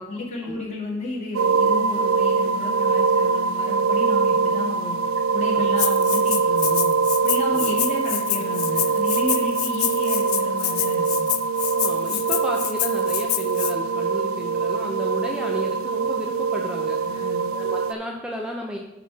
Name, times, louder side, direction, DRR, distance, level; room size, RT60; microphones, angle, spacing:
voice 1, 0.0-5.0 5.3-6.9 7.2-11.3 17.0-17.5, left 2 dB, 35° left, -3 dB, 2.1 m, -32 dB
sound 1, 1.3-17.9, right 5 dB, 75° right, 0.4 m, -23 dB
Rattle (instrument), 5.8-13.7, left 15 dB, 85° left, 0.5 m, -27 dB
voice 2, 11.7-18.8, equal, 5° right, 0 dB, 0.6 m, -33 dB
10.0 x 4.3 x 4.7 m, 0.97 s
head